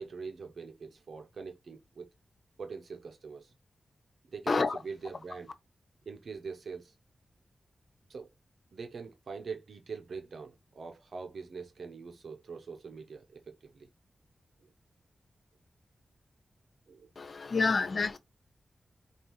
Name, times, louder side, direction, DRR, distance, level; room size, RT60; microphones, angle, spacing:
voice 1, 0.0-2.1 2.6-3.5 4.3-5.5 6.1-6.9 8.1-8.3 8.7-13.9 16.9-17.1, right 5 dB, 75° right, 0.7 m, -43 dB
voice 2, 4.5-4.8 17.2-18.2, left 4 dB, 55° left, 0.4 m, -28 dB
5.2 x 2.4 x 3.0 m
cardioid pair, 75°, 0 cm